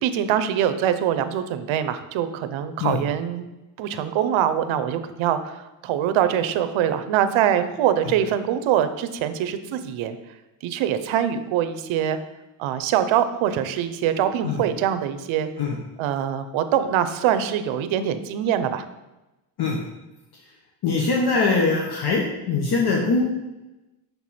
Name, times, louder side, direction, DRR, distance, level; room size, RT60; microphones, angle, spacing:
voice 1, 0.0-3.4 3.8-10.2 10.6-12.2 12.6-15.5 16.0-18.8, right 10 dB, 80° right, 11 dB, 0.7 m, -23 dB
voice 2, 20.8-23.3, left 4 dB, 55° left, -1 dB, 1.0 m, -22 dB
6.7 x 4.6 x 4.2 m, 1.0 s
cardioid pair, 135°, 47 cm